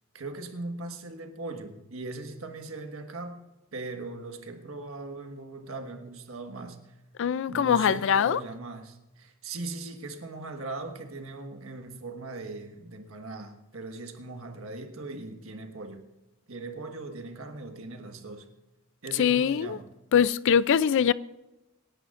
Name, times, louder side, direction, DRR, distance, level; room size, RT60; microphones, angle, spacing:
voice 1, 0.1-3.4 3.7-7.0 7.5-16.0 16.5-18.5 19.0-19.9, right 3 dB, 75° right, 1.5 m, -39 dB
voice 2, 7.2-8.4 19.2-19.8 20.1-21.1, left 7 dB, 60° left, 0.4 m, -22 dB
27.0 x 11.0 x 2.5 m
head